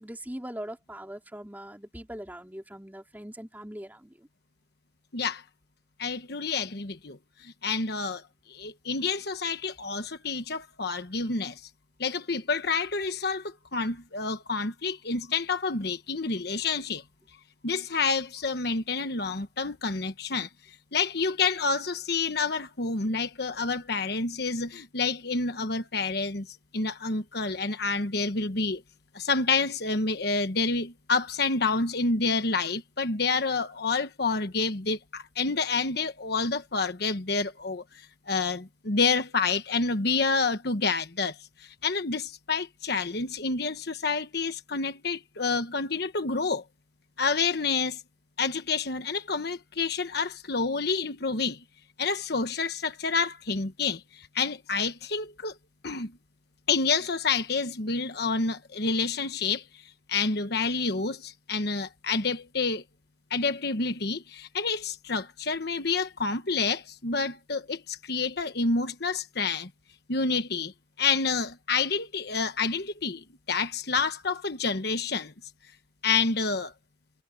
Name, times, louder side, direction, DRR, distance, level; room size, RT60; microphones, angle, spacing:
voice 1, 0.0-4.3, equal, 10° right, 3.4 m, -41 dB
voice 2, 5.1-5.4 6.0-8.2 8.5-11.6 12.0-17.0 17.6-20.5 20.9-28.8 29.1-46.6 47.2-48.0 48.4-51.6 52.0-55.5 55.8-56.1 56.7-59.8 60.1-62.8 63.3-69.7 70.1-70.7 71.0-75.3 76.0-76.7, left 4 dB, 55° left, 1.3 m, -28 dB
head